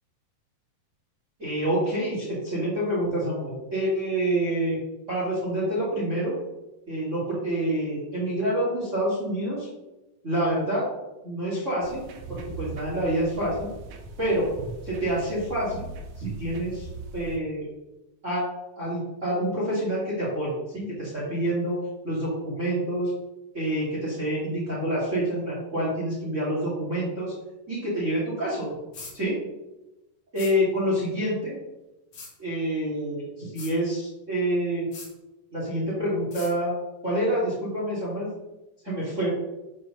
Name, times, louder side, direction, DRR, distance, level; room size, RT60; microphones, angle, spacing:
voice 1, 1.4-4.8 5.1-6.3 6.9-9.7 10.2-10.8 11.2-12.0 12.3-13.7 14.2-14.5 14.8-15.9 16.2-16.9 17.1-17.7 18.2-18.4 18.8-21.8 22.0-23.1 23.5-27.3 27.7-28.7 29.1-29.4 30.3-31.5 32.4-34.9 35.5-36.7 37.0-38.3 38.9-39.3, right 1 dB, 25° right, -6 dB, 2.0 m, -27 dB
sound 1, 11.8-17.4, right 3 dB, 75° right, 2.6 m, -40 dB
sound 2, 28.9-29.1 30.4-30.5 32.1-32.3 33.6-33.7 34.9-35.1 36.3-36.5, left 4 dB, 55° left, 3.5 m, -41 dB
7.4 x 4.6 x 6.5 m, 1.0 s
omnidirectional pair, 4.1 m